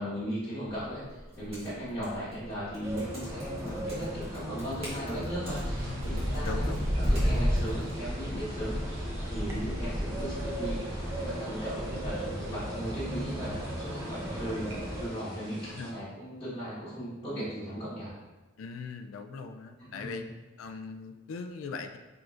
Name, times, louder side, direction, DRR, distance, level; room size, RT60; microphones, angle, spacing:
voice 1, 0.0-18.1 19.8-20.3, equal, 25° left, -13 dB, 1.4 m, -37 dB
sound 1, 0.6-7.9, equal, 30° right, 1.4 m, -47 dB
sound 2, 2.8-15.1, equal, 15° right, 0.7 m, -33 dB
sound 3, 5.4-15.9, right 1 dB, 55° right, 1.1 m, -49 dB
voice 2, 5.9-6.2 6.4-6.9 11.9-12.0 14.5-14.8 15.7-15.9 18.6-20.3 20.6-22.0, left 4 dB, 75° left, 7 dB, 0.3 m, -40 dB
4.8 x 3.7 x 2.5 m, 1.2 s
head